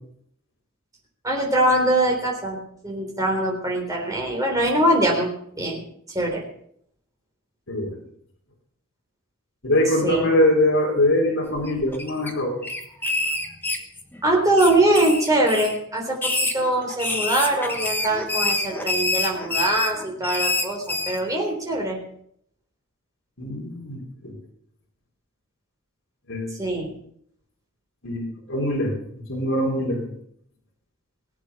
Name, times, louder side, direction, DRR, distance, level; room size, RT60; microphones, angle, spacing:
voice 1, 1.2-2.6 2.8-5.3 5.6-5.8 6.1-6.4 10.0-10.3 14.2-22.0 26.6-26.9, right 1 dB, 15° right, 0 dB, 3.6 m, -22 dB
voice 2, 7.7-8.0 9.6-12.6 23.4-24.4 26.3-26.7 28.0-30.1, left 1 dB, 60° left, -2 dB, 3.4 m, -23 dB
sound 1, 11.6-12.3 12.6-14.2 14.6-15.8 16.1-21.2, left 2 dB, 10° left, 1.3 m, -26 dB
19.5 x 8.6 x 5.9 m, 0.68 s
head